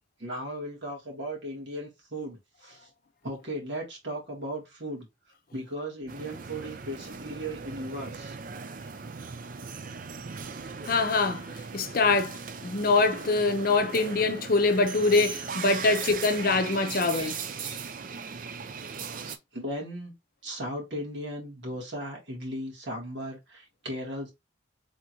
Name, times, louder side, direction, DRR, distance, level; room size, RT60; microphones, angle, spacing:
voice 1, 0.2-2.9 3.2-5.1 5.5-8.4 15.8-16.1 16.5-16.6 16.9-17.3 17.6-17.8 19.2-20.1 20.4-24.3, equal, 65° right, 1.8 m, -37 dB
sound 1, 6.1-19.4, right 5 dB, 45° right, 0.4 m, -38 dB
voice 2, 10.8-17.4, left 3 dB, 45° left, 0.6 m, -24 dB
3.5 x 2.5 x 4.4 m
head